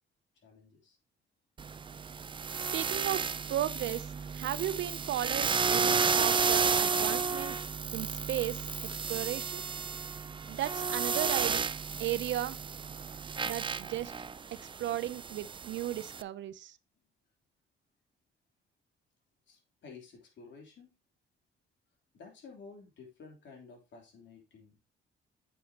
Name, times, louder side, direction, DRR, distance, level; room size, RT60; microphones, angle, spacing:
voice 1, 0.4-1.0 19.5-20.9 22.1-24.8, left 4 dB, 65° left, 3.4 m, -52 dB
sound 1, 1.6-16.2, right 5 dB, 25° right, 0.4 m, -32 dB
voice 2, 2.7-4.1 4.3-9.6 10.5-11.6 12.0-12.6 13.4-14.1 14.6-16.8, right 12 dB, 70° right, 0.6 m, -35 dB
8.7 x 7.1 x 2.9 m
cardioid pair, 90°, 20 cm